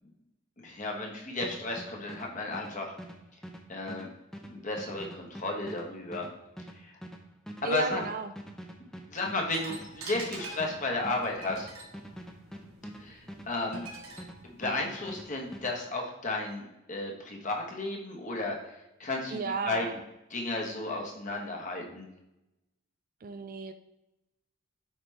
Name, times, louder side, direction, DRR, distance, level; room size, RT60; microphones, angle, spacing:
voice 1, 0.6-2.9 3.7-4.1 4.5-6.3 6.8-7.0 7.6-8.0 8.8-11.7 13.0-13.8 14.4-18.7 19.0-20.0 20.3-22.1, left 2 dB, 35° left, 1 dB, 1.2 m, -34 dB
sound 1, 1.4-14.4 14.6-15.7, equal, ahead, 0.6 m, -44 dB
voice 2, 7.6-8.3 19.3-20.0 23.2-23.7, right 4 dB, 40° right, 9 dB, 0.3 m, -33 dB
sound 2, 9.5-15.5, right 2 dB, 75° right, 1.5 m, -47 dB
8.0 x 4.9 x 3.3 m, 0.91 s
head